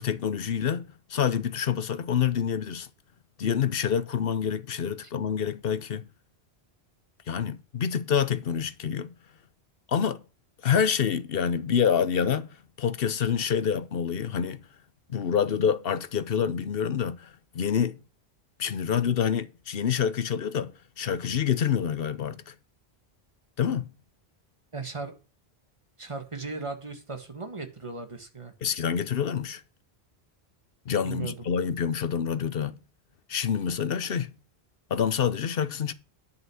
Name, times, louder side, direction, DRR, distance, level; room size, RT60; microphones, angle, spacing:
voice 1, 0.0-2.9 3.4-6.1 7.3-9.1 9.9-10.2 10.6-12.5 12.8-14.6 15.1-18.0 18.6-22.5 23.6-23.9 28.6-29.6 30.9-32.8 33.3-34.3 34.9-35.9, left 7 dB, 65° left, 1.0 m, -27 dB
voice 2, 24.7-25.1 26.0-28.5 31.0-31.5, right 4 dB, 30° right, 1.7 m, -37 dB
10.5 x 5.9 x 6.2 m
omnidirectional pair, 1.1 m